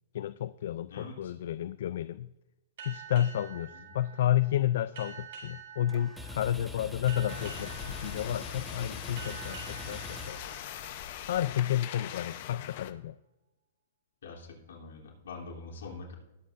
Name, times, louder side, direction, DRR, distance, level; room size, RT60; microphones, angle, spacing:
voice 1, 0.1-2.3 2.9-10.4 11.3-13.1, left 11 dB, 65° left, 14 dB, 0.4 m, -31 dB
voice 2, 0.9-1.3 3.7-4.0 14.2-16.2, left 3 dB, 85° left, -2 dB, 3.2 m, -44 dB
sound 1, 2.8-11.9, right 6 dB, 60° right, 4.0 m, -48 dB
sound 2, 5.9-11.1, left 3 dB, ahead, 1.2 m, -43 dB
sound 3, 7.3-12.9, left 12 dB, 50° left, 0.8 m, -42 dB
19.5 x 7.9 x 2.6 m, 0.99 s
hypercardioid pair, 155°, 0 cm